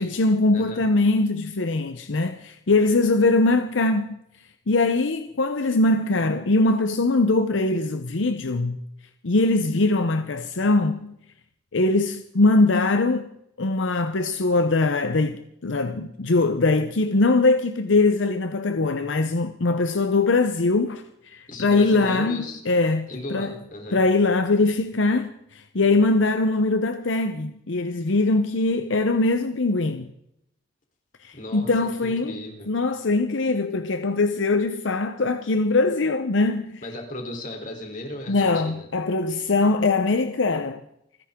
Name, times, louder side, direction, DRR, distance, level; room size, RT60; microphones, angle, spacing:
voice 1, 0.0-4.1 4.7-8.8 9.2-11.1 11.7-13.3 13.6-23.6 23.9-30.1 31.2-32.4 32.7-36.8 38.3-40.8, left 2 dB, 80° left, 0.8 m, -22 dB
voice 2, 21.5-22.6 23.1-24.0 31.3-31.7 32.0-32.7 36.8-38.9, left 1 dB, 45° left, 3.5 m, -36 dB
28.5 x 10.5 x 3.7 m
head